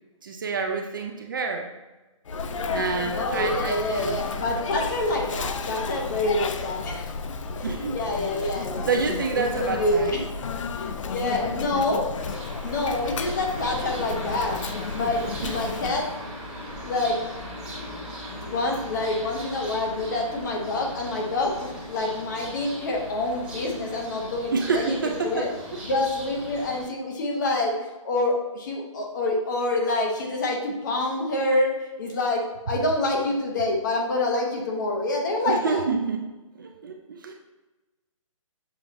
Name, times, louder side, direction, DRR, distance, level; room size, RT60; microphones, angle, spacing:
voice 1, 0.2-1.7 2.7-4.2 7.6-8.0 8.8-10.2 15.4-15.5 24.5-25.8 35.5-36.2 36.6-37.3, right 4 dB, 40° right, 3 dB, 0.4 m, -28 dB
Sneeze, 2.3-16.0, left 4 dB, 65° left, 0.4 m, -32 dB
voice 2, 3.1-7.1 7.6-8.9 9.3-10.2 10.7-12.1 12.6-14.6 14.9-16.1 16.8-17.2 18.3-25.5 25.8-27.7 28.0-35.8, left 2 dB, 35° left, 0 dB, 0.9 m, -27 dB
sound 1, 12.2-26.8, equal, 5° right, 1.1 m, -38 dB
7.0 x 2.9 x 2.6 m, 1.1 s
hypercardioid pair, 170°, 17 cm